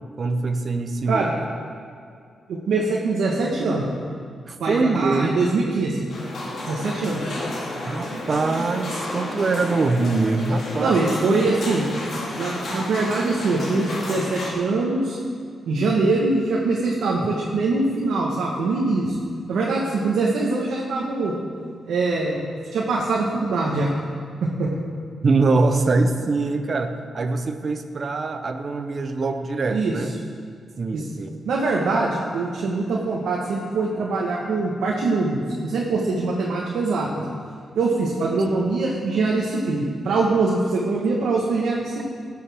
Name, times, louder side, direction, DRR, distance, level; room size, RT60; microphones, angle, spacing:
voice 1, 0.2-1.3 4.5-5.4 7.9-11.5 25.2-30.1 30.8-31.4, right 3 dB, 40° right, 8 dB, 0.7 m, -23 dB
voice 2, 2.5-3.8 4.6-6.1 6.6-7.3 10.8-11.9 12.4-15.2 15.7-19.2 19.5-21.3 21.9-22.4 22.7-23.9 24.4-24.7 29.7-29.9 30.9-31.1 31.4-37.2 37.7-42.0, right 3 dB, 90° right, -3 dB, 1.2 m, -23 dB
sound 1, 6.1-14.5, left 1 dB, 60° left, 2.2 m, -31 dB
18.0 x 6.9 x 3.5 m, 2.2 s
wide cardioid pair, 125°, 0 cm